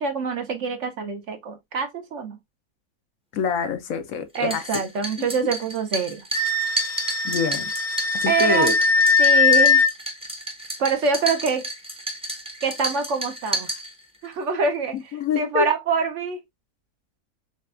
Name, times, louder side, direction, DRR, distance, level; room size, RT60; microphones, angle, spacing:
voice 1, 0.0-2.4 4.3-6.2 8.3-8.8 9.2-9.8 10.8-11.7 12.6-13.7 14.2-16.4, right 5 dB, 60° right, 0.9 m, -25 dB
voice 2, 3.3-4.6 5.2-5.3 7.2-7.7 8.1-8.7 15.1-15.7, left 6 dB, 70° left, 1.0 m, -26 dB
sound 1, 4.3-14.3, right 1 dB, 5° right, 0.6 m, -32 dB
Wind instrument woodwind instrument, 6.3-9.9, left 4 dB, 40° left, 0.8 m, -20 dB
6.6 x 2.3 x 2.3 m
omnidirectional pair, 1.6 m